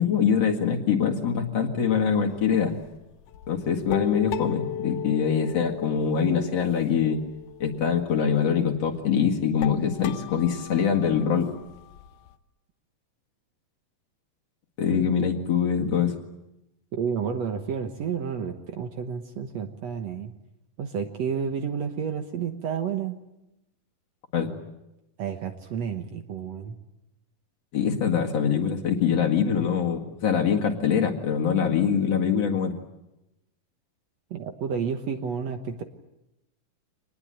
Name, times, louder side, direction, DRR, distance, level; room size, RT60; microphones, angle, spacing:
voice 1, 0.0-2.8 3.5-7.2 7.6-11.5 14.8-16.1 24.3-24.5 27.7-32.7, left 7 dB, 50° left, 2 dB, 2.8 m, -24 dB
sound 1, 2.3-12.3, left 10 dB, 70° left, 2.4 m, -37 dB
voice 2, 16.9-20.3 20.8-23.2 25.2-26.8 34.3-35.8, right 7 dB, 60° right, 6 dB, 2.1 m, -30 dB
25.5 x 20.0 x 9.0 m, 0.92 s
omnidirectional pair, 3.9 m